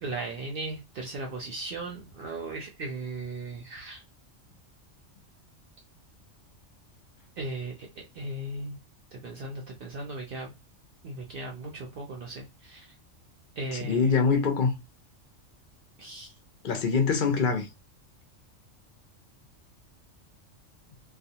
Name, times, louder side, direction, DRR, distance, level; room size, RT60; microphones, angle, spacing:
voice 1, 0.0-4.0 7.4-7.8 8.1-8.8 9.1-10.5 11.0-12.9 13.6-14.1 16.0-16.3, right 2 dB, 55° right, 0.7 m, -37 dB
voice 2, 13.7-14.7 16.6-17.6, left 5 dB, 55° left, 0.7 m, -24 dB
2.4 x 2.2 x 2.7 m
omnidirectional pair, 1.3 m